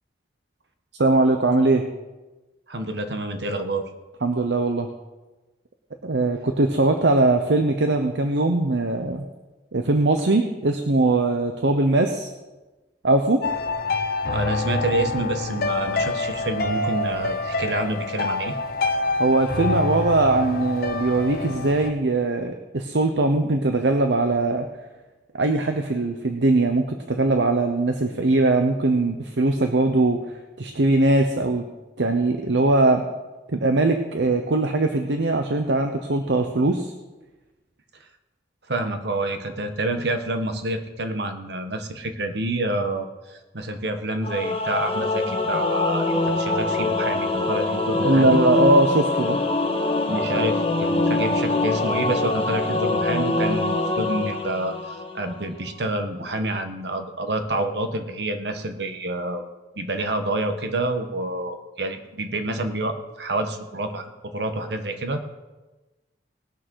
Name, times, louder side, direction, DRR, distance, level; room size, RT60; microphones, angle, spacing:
voice 1, 1.0-1.8 4.2-4.9 6.0-9.2 9.7-12.3 13.0-13.5 19.2-24.7 25.3-30.2 30.6-31.6 32.0-33.0 33.5-36.9 48.0-49.4, right 2 dB, 85° right, 6 dB, 0.9 m, -21 dB
voice 2, 2.7-3.8 14.2-18.6 38.7-48.4 50.1-59.4 59.8-65.3, right 2 dB, 70° right, 7 dB, 1.2 m, -28 dB
sound 1, 13.4-21.9, left 3 dB, 55° left, 0.9 m, -26 dB
Singing / Musical instrument, 44.2-55.5, left 2 dB, 35° left, 1.1 m, -24 dB
19.0 x 6.3 x 6.3 m, 1.1 s
head